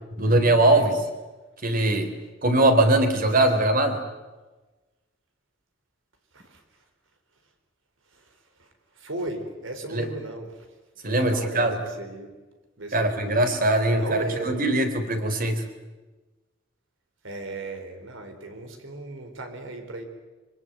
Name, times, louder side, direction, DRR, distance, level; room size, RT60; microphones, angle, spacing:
voice 1, 0.2-0.9 1.6-2.1 2.4-4.0 9.9-10.1 11.0-11.7 12.9-15.6, right 1 dB, 45° right, 7 dB, 3.6 m, -21 dB
voice 2, 8.9-10.7 11.0-12.3 12.8-13.2 13.9-14.6 17.2-20.0, right 2 dB, 75° right, 6 dB, 4.4 m, -36 dB
25.0 x 23.5 x 9.5 m, 1.2 s
head